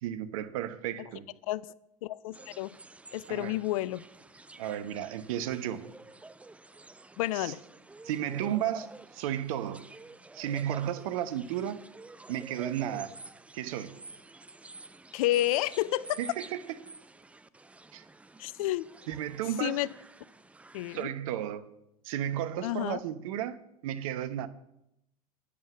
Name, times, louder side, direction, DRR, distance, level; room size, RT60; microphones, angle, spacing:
voice 1, 0.0-1.3 3.3-3.6 4.6-5.8 7.3-7.5 8.0-9.9 10.3-11.8 12.3-13.1 13.5-13.9 16.2-16.8 17.9-18.0 19.1-19.8 20.9-21.7 22.0-24.5, right 11 dB, 60° right, 0.9 m, -33 dB
voice 2, 2.0-2.8 3.1-4.0 7.2-7.6 15.1-16.2 18.4-18.8 19.6-19.9 20.7-21.1 22.6-23.0, left 15 dB, 60° left, 0.5 m, -30 dB
sound 1, 2.3-21.0, right 2 dB, 5° right, 0.4 m, -50 dB
9.2 x 8.3 x 6.0 m
figure-of-eight pair, 80°, 20 cm